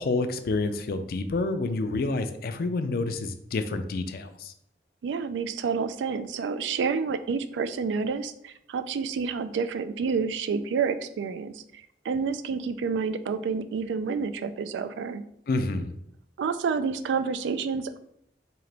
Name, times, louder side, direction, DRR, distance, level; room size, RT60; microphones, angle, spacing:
voice 1, 0.0-4.5 15.5-15.9, left 3 dB, 55° left, 8 dB, 0.4 m, -28 dB
voice 2, 5.0-11.6 12.0-15.2 16.4-18.0, right 5 dB, 90° right, 11 dB, 0.3 m, -29 dB
3.8 x 2.9 x 3.3 m, 0.73 s
head